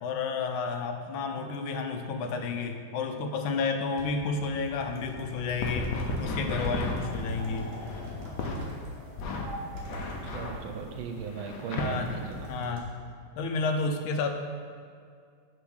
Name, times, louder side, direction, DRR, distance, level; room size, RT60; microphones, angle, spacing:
voice 1, 0.0-7.7 11.7-12.2 12.5-12.9 13.4-14.3, left 4 dB, 85° left, 5 dB, 1.5 m, -31 dB
sound 1, 4.0-8.9 9.8-10.4 11.8-12.9, right 1 dB, 35° right, 1.4 m, -43 dB
sound 2, 5.6-8.6 9.2-12.5, left 2 dB, 65° left, 1.2 m, -35 dB
sound 3, 6.6-11.5, equal, 5° left, 1.4 m, -46 dB
voice 2, 7.4-7.8 10.2-12.5, right 6 dB, 85° right, 4 dB, 1.4 m, -38 dB
6.9 x 3.7 x 6.3 m, 2.2 s
omnidirectional pair, 2.2 m